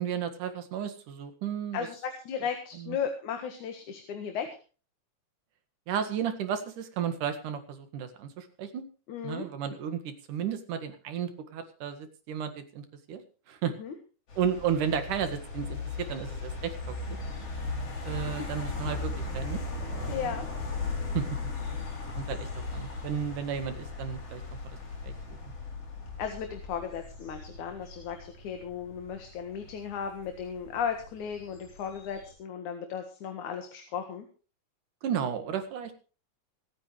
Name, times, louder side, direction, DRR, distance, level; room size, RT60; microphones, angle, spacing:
voice 1, 0.0-1.9 2.7-3.0 5.9-8.8 9.2-13.2 13.5-13.7 14.4-17.2 18.0-20.3 21.1-21.3 22.2-24.8 25.0-25.1 35.0-35.9, right 8 dB, 80° right, 8 dB, 3.3 m, -33 dB
voice 2, 1.7-4.5 9.1-9.5 13.8-13.9 20.1-20.5 26.2-34.3, left 7 dB, 70° left, 5 dB, 3.0 m, -35 dB
sound 1, 14.3-32.3, left 3 dB, 50° left, 4.4 m, -37 dB
26.0 x 9.1 x 3.2 m, 0.36 s
omnidirectional pair, 3.6 m